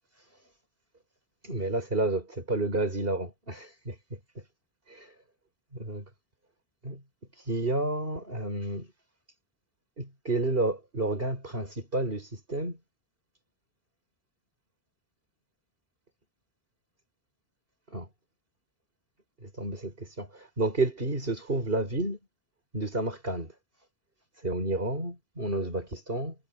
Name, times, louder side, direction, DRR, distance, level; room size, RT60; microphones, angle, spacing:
voice 1, 1.4-4.0 4.9-5.1 5.7-6.1 6.8-7.0 7.4-8.9 10.0-12.8 17.9-18.1 19.4-22.2 22.7-23.5 24.4-26.4, right 2 dB, 65° right, 5.4 m, -30 dB
omnidirectional pair, 1.0 m